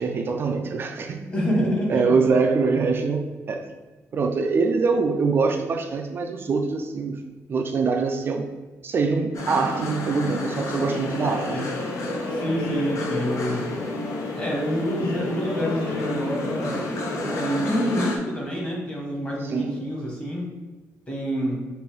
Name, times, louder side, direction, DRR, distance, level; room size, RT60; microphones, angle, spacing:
voice 1, 0.0-1.3 1.5-1.6 1.9-3.7 4.1-7.1 7.5-8.5 8.8-11.5 19.4-19.7, right 4 dB, 45° right, 3 dB, 0.4 m, -24 dB
voice 2, 1.3-2.3 11.2-11.7 12.3-13.7 14.3-20.5 21.1-21.6, equal, 25° left, -2 dB, 1.3 m, -27 dB
sound 1, 9.3-18.2, left 2 dB, 70° left, 0.7 m, -30 dB
5.3 x 2.6 x 3.4 m, 1.2 s
cardioid pair, 125°, 6 cm